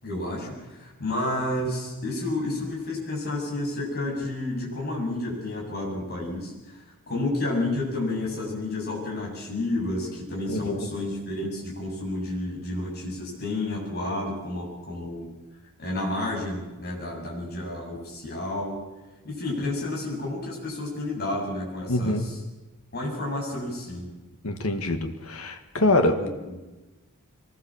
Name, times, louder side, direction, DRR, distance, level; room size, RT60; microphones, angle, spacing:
voice 1, 0.0-15.3 15.8-18.8 19.2-22.3 22.9-24.1 25.8-26.7, left 2 dB, 45° left, -3 dB, 7.6 m, -31 dB
voice 2, 21.9-22.3 24.4-26.2, left 2 dB, 75° left, 6 dB, 2.0 m, -24 dB
23.0 x 19.5 x 7.4 m, 1.1 s
head